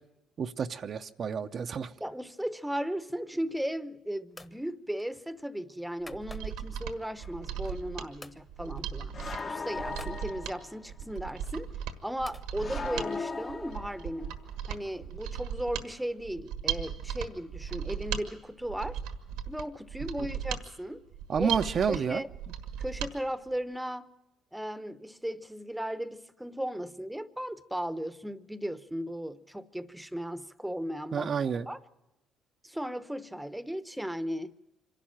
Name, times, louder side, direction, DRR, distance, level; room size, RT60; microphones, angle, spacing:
voice 1, 0.4-1.9 21.3-22.2 31.1-31.7, right 6 dB, 50° right, 0.6 m, -30 dB
voice 2, 2.0-9.1 9.4-11.8 12.0-14.4 14.7-19.0 19.5-21.0 21.4-21.5 21.9-22.3 22.8-24.1 24.5-31.3 31.7-31.8 32.6-34.5, equal, 5° right, 0.8 m, -36 dB
sound 1, 3.4-3.9 4.3-4.6 5.0-6.8 7.2-7.9 8.2-8.4 8.8-8.9 9.2-10.2 11.0-12.5, left 2 dB, 15° left, 1.2 m, -52 dB
Mechanisms, 6.1-23.1 23.5-23.6, right 9 dB, 90° right, 1.4 m, -37 dB
sound 2, 7.2-7.4 9.1-10.8 12.6-14.3, left 4 dB, 40° left, 1.1 m, -38 dB
25.5 x 11.5 x 8.9 m
supercardioid pair, 65°, 0 cm